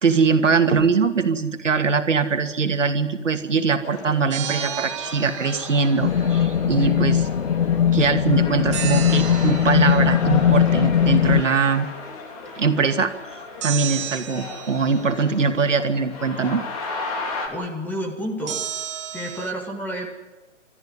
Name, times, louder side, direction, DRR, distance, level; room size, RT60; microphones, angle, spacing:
voice 1, 0.0-7.3 7.9-11.9 12.6-13.1 13.6-16.6, right 5 dB, 70° right, 7 dB, 2.4 m, -21 dB
sound 1, 3.8-17.5, left 3 dB, 30° left, 3.4 m, -35 dB
sound 2, 4.3-6.4 8.7-10.2 13.6-15.3 18.5-19.5, right 11 dB, 25° right, 1.2 m, -33 dB
sound 3, 6.0-11.4, left 9 dB, 55° left, 0.9 m, -19 dB
voice 2, 17.5-18.7 19.1-20.1, equal, 5° left, 1 dB, 1.7 m, -30 dB
27.0 x 14.0 x 9.7 m, 1.1 s
figure-of-eight pair, 150°, 38 cm